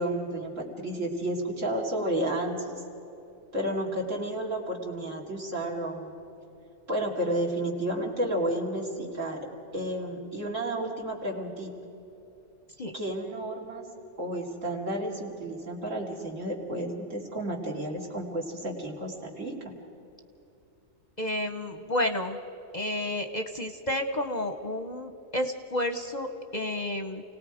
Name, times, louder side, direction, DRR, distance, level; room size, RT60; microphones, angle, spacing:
voice 1, 0.0-2.7 3.5-6.1 6.9-9.4 9.7-11.7 12.9-13.8 14.2-19.5, right 1 dB, 65° right, -1 dB, 3.0 m, -31 dB
voice 2, 21.2-22.4 22.7-27.2, left 1 dB, 40° left, 6 dB, 0.8 m, -31 dB
29.0 x 18.5 x 5.0 m, 2.9 s
omnidirectional pair, 1.4 m